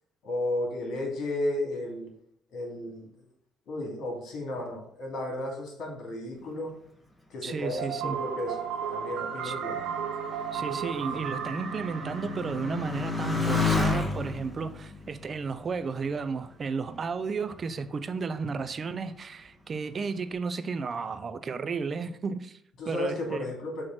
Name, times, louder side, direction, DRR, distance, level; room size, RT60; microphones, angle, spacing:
voice 1, 0.2-2.1 2.5-3.0 3.7-6.7 7.3-8.6 8.9-9.8 22.8-23.8, left 1 dB, 70° left, 2.6 m, -33 dB
voice 2, 7.4-8.2 9.4-9.5 10.5-22.6 22.9-23.5, right 5 dB, 40° right, 0.5 m, -33 dB
Motorcycle, 7.8-16.8 17.5-18.1, left 4 dB, 10° left, 1.3 m, -33 dB
sound 1, 7.8-13.6, right 8 dB, 85° right, 0.9 m, -35 dB
6.5 x 3.1 x 5.9 m
cardioid pair, 100°, 0 cm